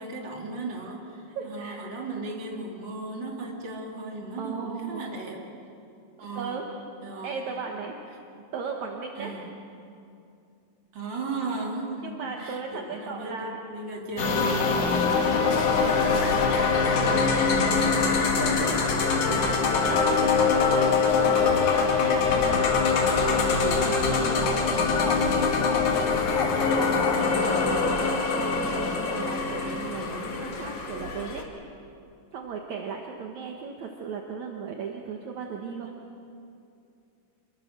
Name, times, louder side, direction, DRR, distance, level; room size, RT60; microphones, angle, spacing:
voice 1, 0.0-5.4 6.2-6.6 7.0-7.4 8.4-8.5 9.2-9.5 10.9-15.1 15.4-16.2 24.6-25.0 27.3-28.2, right 3 dB, 35° right, 0 dB, 3.1 m, -36 dB
voice 2, 1.4-1.8 4.4-5.0 6.2-6.7 7.2-8.0 8.5-9.3 12.0-13.6 14.6-14.8 15.1-18.8 19.2-22.7 23.3-25.2 26.7-27.8 28.3-31.5 32.3-35.9, right 5 dB, 65° right, 1 dB, 2.5 m, -36 dB
sound 1, 14.2-31.4, left 5 dB, 65° left, 3.3 m, -23 dB
27.5 x 22.5 x 6.7 m, 2.6 s
omnidirectional pair, 3.9 m